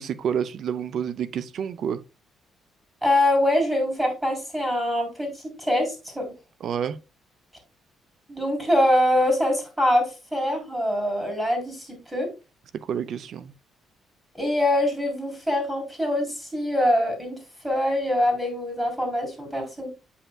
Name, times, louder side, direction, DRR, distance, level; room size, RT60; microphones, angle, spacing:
voice 1, 0.0-2.0 6.6-7.0 12.8-13.5, right 8 dB, 65° right, 0.5 m, -29 dB
voice 2, 3.0-6.2 8.3-12.3 14.4-17.4 17.6-19.9, left 1 dB, 10° right, 3.6 m, -24 dB
8.4 x 5.6 x 2.3 m
cardioid pair, 90°, 0 cm